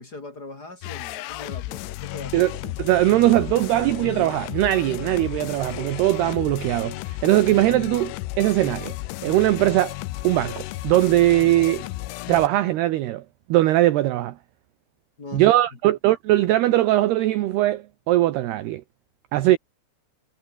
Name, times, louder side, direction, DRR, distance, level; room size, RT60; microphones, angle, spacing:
voice 1, 0.0-2.5 15.2-15.6, left 3 dB, 25° left, 2.4 m, -40 dB
sound 1, 0.8-12.5, left 18 dB, 90° left, 3.4 m, -34 dB
voice 2, 2.8-9.0 9.2-10.0 10.2-11.9 12.3-13.2 13.5-14.4 15.3-18.8 19.3-19.6, right 15 dB, 70° right, 2.8 m, -20 dB
omnidirectional pair, 5.3 m